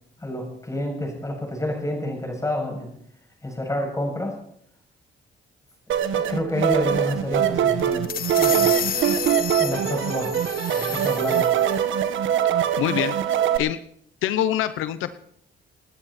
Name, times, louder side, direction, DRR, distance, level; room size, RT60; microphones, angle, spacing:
voice 1, 0.2-2.9 3.4-4.4 6.1-8.8 9.6-10.4 10.7-11.5, left 1 dB, 15° left, 2 dB, 7.2 m, -29 dB
sound 1, 5.9-13.6, right 9 dB, 75° right, 1.5 m, -23 dB
sound 2, 7.8-11.8, left 10 dB, 50° left, 0.5 m, -31 dB
voice 2, 12.8-13.1 13.6-13.8 14.2-15.1, left 11 dB, 90° left, 12 dB, 0.8 m, -24 dB
28.5 x 10.0 x 4.3 m, 0.69 s
cardioid pair, 90°, 20 cm